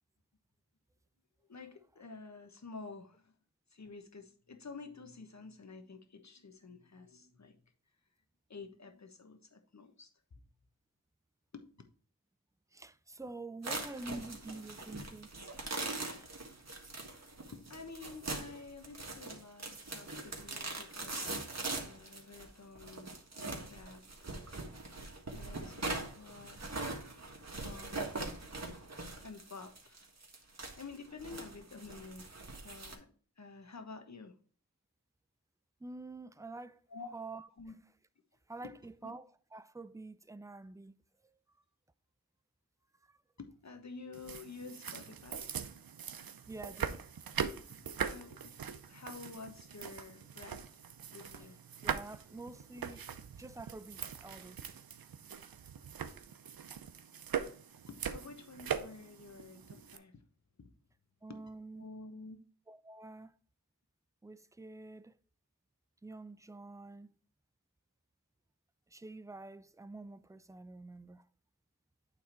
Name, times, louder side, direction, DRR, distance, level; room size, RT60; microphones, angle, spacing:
voice 1, 1.5-3.3 3.7-7.6 8.5-10.4 11.5-11.8 17.5-24.3 25.3-26.9 27.6-28.3 29.2-30.1 30.8-33.1 33.4-34.3 36.9-37.1 37.6-37.7 38.6-38.7 39.0-39.1 43.4-45.6 47.7-50.8 51.1-51.6 57.9-60.2 60.6-60.7 61.3-61.4 61.8-62.4, left 4 dB, 50° left, 1.2 m, -50 dB
voice 2, 12.7-15.3 16.2-16.3 35.8-36.8 37.1-37.5 38.5-41.0 43.0-43.2 46.5-47.0 51.4-51.5 51.8-53.1 53.4-54.6 61.2-61.9 62.7-63.4 64.2-65.2 66.0-67.1 68.9-71.2, right 2 dB, 10° right, 0.4 m, -47 dB
sound 1, 13.6-32.9, right 2 dB, 50° right, 1.6 m, -42 dB
sound 2, 44.1-60.0, right 7 dB, 75° right, 0.6 m, -42 dB
8.8 x 3.6 x 4.4 m
wide cardioid pair, 50°, 35 cm